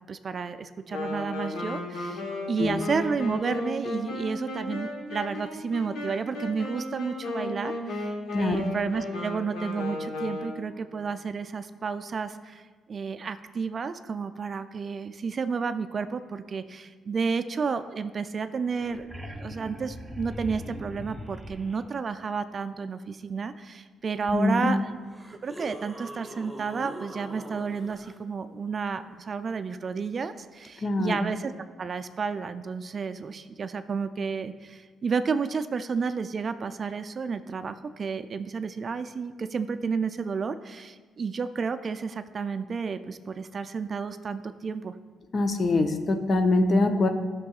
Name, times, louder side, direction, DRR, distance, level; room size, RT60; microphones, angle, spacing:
voice 1, 0.1-2.2 2.5-24.9 25.4-31.5 31.8-44.9, right 5 dB, 45° right, 10 dB, 0.3 m, -31 dB
Wind instrument woodwind instrument, 0.9-10.8, left 2 dB, 85° left, 1.1 m, -34 dB
sound 1, 18.7-21.8 24.3-24.4 25.0-28.1 30.7-30.8, equal, 10° right, 0.6 m, -41 dB
voice 2, 24.3-24.7 30.8-31.2 45.3-47.1, left 2 dB, 40° left, 6 dB, 0.7 m, -23 dB
12.5 x 6.0 x 2.4 m, 1.4 s
cardioid pair, 90°, 0 cm